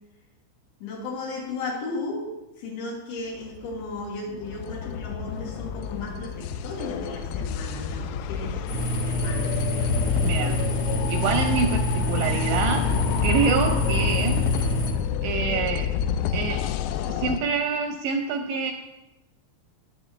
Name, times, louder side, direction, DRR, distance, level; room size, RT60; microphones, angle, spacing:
voice 1, 0.8-8.7 9.0-9.6, left 3 dB, 65° left, -2 dB, 3.9 m, -35 dB
sound 1, 3.5-17.4, left 7 dB, 90° left, 3.3 m, -28 dB
sound 2, 8.7-14.9, equal, 45° left, 1.9 m, -27 dB
voice 2, 10.2-10.6 11.1-12.9 13.2-14.4 15.2-15.9 16.3-16.6 17.1-18.7, right 5 dB, 80° right, 4 dB, 2.6 m, -26 dB
19.5 x 8.5 x 3.2 m, 1.0 s
omnidirectional pair, 5.9 m